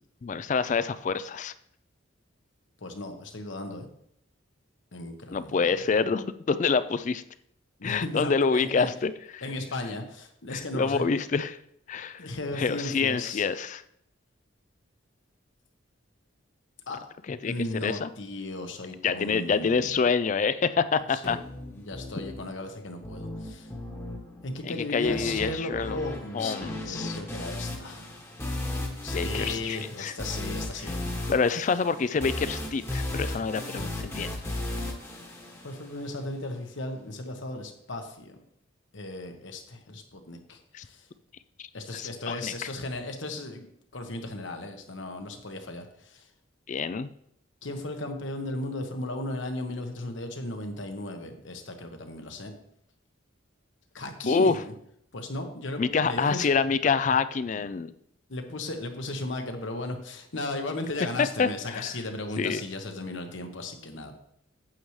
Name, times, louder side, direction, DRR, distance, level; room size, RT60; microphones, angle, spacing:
voice 1, 0.2-1.5 5.3-7.2 7.8-9.4 10.5-11.6 11.9-12.2 12.5-13.8 17.3-17.5 17.8-18.1 19.0-21.4 24.6-26.0 26.3-27.2 29.1-30.1 30.8-30.9 31.3-34.3 40.7-40.8 41.6-41.7 41.9-42.5 46.7-47.1 54.3-54.6 55.8-57.9 61.2-61.9 62.4-62.6, left 5 dB, 40° left, 14 dB, 0.3 m, -27 dB
voice 2, 2.8-3.9 4.9-5.8 7.8-8.9 9.4-11.0 12.2-13.4 16.9-17.0 17.4-20.0 21.1-21.4 21.8-23.7 24.4-26.6 26.8-28.1 29.0-31.0 35.6-38.3 38.9-41.1 41.7-43.7 43.9-46.3 47.6-52.5 53.9-54.7 55.1-56.5 58.3-64.1, left 2 dB, 65° left, 5 dB, 1.1 m, -36 dB
sound 1, 21.2-36.2, left 1 dB, 15° left, 1.1 m, -36 dB
8.8 x 7.8 x 3.2 m, 0.72 s
head